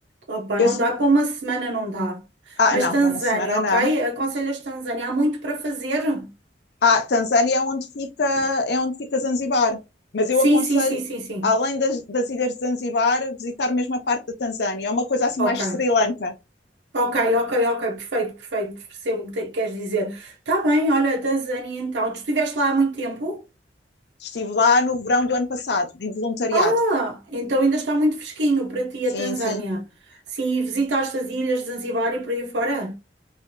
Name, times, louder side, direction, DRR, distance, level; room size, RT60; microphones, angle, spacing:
voice 1, 0.3-2.2 2.5-6.3 10.4-11.5 15.4-15.8 16.9-23.4 26.5-29.9 30.3-33.0, right 1 dB, 80° right, 0.7 m, -24 dB
voice 2, 2.6-3.9 6.8-9.8 10.1-11.0 11.4-16.3 24.2-26.7 29.1-29.6, left 3 dB, 65° left, 0.6 m, -22 dB
3.3 x 2.7 x 2.2 m
head